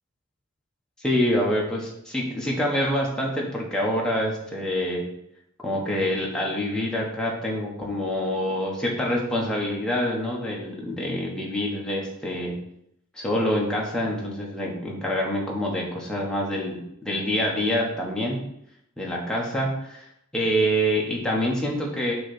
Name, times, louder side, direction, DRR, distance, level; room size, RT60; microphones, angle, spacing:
voice 1, 1.0-5.1 5.6-12.6 13.1-18.4 19.0-20.0 20.3-22.1, equal, 5° left, -3 dB, 1.3 m, -26 dB
6.1 x 3.4 x 5.9 m, 0.76 s
head